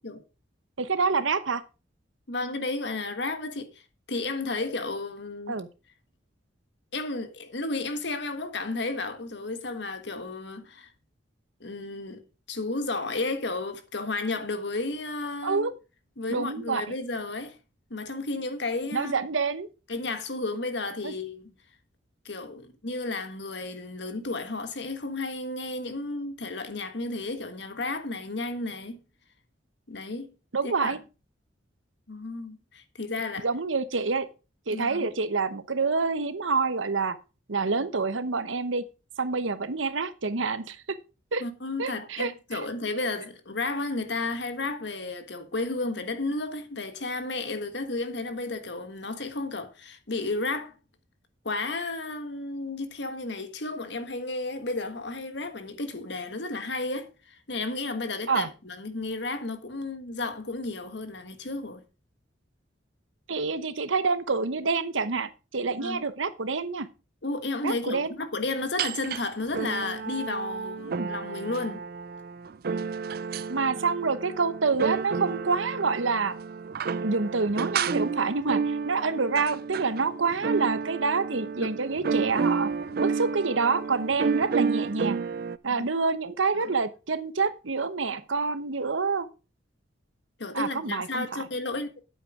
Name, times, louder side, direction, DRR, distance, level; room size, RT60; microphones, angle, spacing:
voice 1, 0.8-1.6 5.5-5.7 15.4-15.7 16.3-16.9 18.9-19.7 21.0-21.1 30.5-31.0 33.4-34.3 34.7-37.2 37.5-38.9 39.2-40.8 41.3-41.4 41.8-42.6 58.3-58.5 63.3-66.9 67.6-68.1 70.8-71.1 73.5-76.4 77.0-82.7 83.0-85.2 85.6-89.3 90.5-91.5, right 4 dB, 90° right, 1.0 m, -27 dB
voice 2, 2.3-3.8 4.1-5.5 6.9-10.9 11.6-12.2 12.5-15.7 16.2-17.6 17.9-19.2 19.9-21.5 22.2-29.0 29.9-30.3 30.6-31.0 32.1-33.5 34.7-35.1 41.4-50.7 51.4-61.8 65.8-66.0 67.2-71.8 81.4-81.7 82.9-83.0 86.6-86.7 90.4-91.9, left 2 dB, 65° left, 1.5 m, -33 dB
sound 1, 68.8-69.2 69.5-85.6, right 5 dB, 50° right, 0.4 m, -31 dB
8.9 x 8.3 x 4.9 m
head